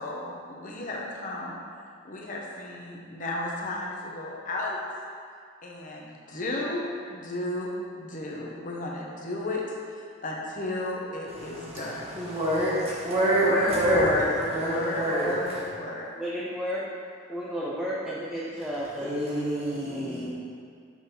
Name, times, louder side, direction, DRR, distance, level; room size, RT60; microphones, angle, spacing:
voice 1, 0.0-1.6 2.0-4.8 5.6-6.8 7.1-7.7 8.0-9.6 9.9-12.1 13.3-14.3 14.7-16.1 19.7-20.3, left 2 dB, 45° left, -3 dB, 1.1 m, -33 dB
voice 2, 11.4-14.0 14.4-15.6 19.0-20.3, right 1 dB, 35° right, -7 dB, 1.4 m, -27 dB
voice 3, 13.5-15.4 16.1-16.9 17.3-19.2, equal, 5° right, -7 dB, 0.7 m, -32 dB
6.3 x 4.1 x 5.4 m, 2.2 s
head